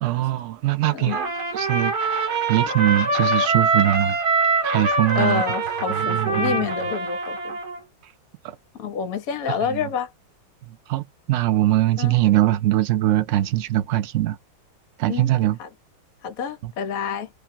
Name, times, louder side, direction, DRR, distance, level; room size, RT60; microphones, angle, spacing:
voice 1, 0.0-1.2 1.5-2.2 2.5-4.2 4.6-5.4 5.9-6.6 9.7-9.8 10.9-11.0 11.3-14.4 15.0-15.6 16.6-16.7, right 14 dB, 85° right, 0.6 m, -21 dB
Trumpet, 1.1-7.8, right 3 dB, 60° right, 1.7 m, -24 dB
voice 2, 5.1-7.6 8.8-10.1 12.0-12.2 15.1-15.3 15.6-15.7 16.2-17.3, left 7 dB, 60° left, 1.2 m, -28 dB
3.3 x 2.3 x 2.6 m
omnidirectional pair, 2.0 m